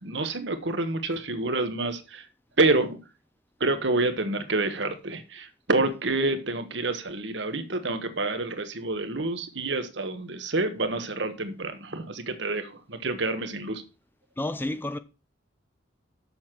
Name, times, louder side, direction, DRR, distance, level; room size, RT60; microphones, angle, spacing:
voice 1, 0.0-2.3 2.6-3.0 3.6-13.8, right 2 dB, 65° right, 1.3 m, -28 dB
voice 2, 14.4-15.0, left 1 dB, 10° left, 0.3 m, -30 dB
7.2 x 6.5 x 5.9 m
head